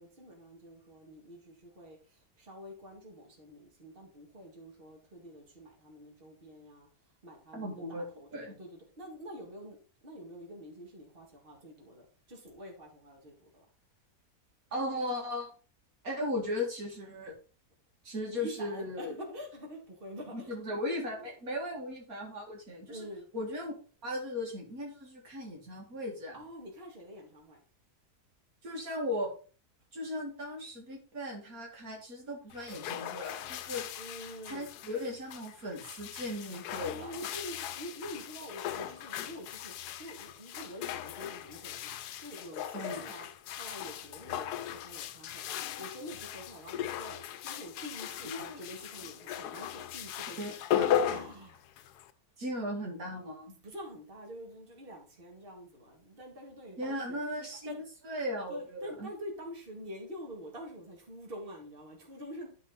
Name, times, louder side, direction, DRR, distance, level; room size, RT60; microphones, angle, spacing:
voice 1, 0.0-6.9 7.2-9.8 10.0-13.6 18.3-20.5 21.1-21.3 22.9-23.3 26.3-27.6 34.0-34.7 36.8-43.3 43.5-45.4 45.8-48.3 48.6-50.6 51.0-51.6 53.6-57.2 57.7-57.8 58.5-62.5, equal, 35° right, 2.3 m, -46 dB
voice 2, 7.5-8.0 8.3-8.6 14.7-15.5 16.0-17.3 18.0-19.2 20.3-23.1 23.3-23.8 24.0-26.4 28.6-29.3 29.9-33.8 34.4-37.2 42.7-43.1 48.2-48.6 50.4-51.0 52.4-53.6 56.8-59.1, left 1 dB, 65° right, 2.5 m, -37 dB
sound 1, 32.5-52.1, left 10 dB, 90° left, 1.2 m, -37 dB
11.5 x 4.4 x 4.0 m
omnidirectional pair, 1.7 m